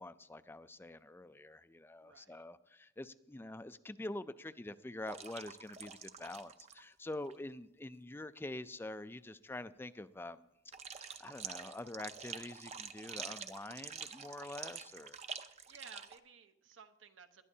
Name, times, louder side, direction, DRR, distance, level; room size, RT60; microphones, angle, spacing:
voice 1, 0.0-10.5 10.9-15.2, left 2 dB, 10° left, 13 dB, 0.3 m, -46 dB
voice 2, 2.0-2.4 15.7-17.4, right 6 dB, 70° right, 7 dB, 1.0 m, -56 dB
sound 1, 5.1-6.8 7.1-7.3 10.7-16.2, right 6 dB, 35° right, 0.6 m, -47 dB
19.5 x 12.0 x 2.8 m, 0.87 s
head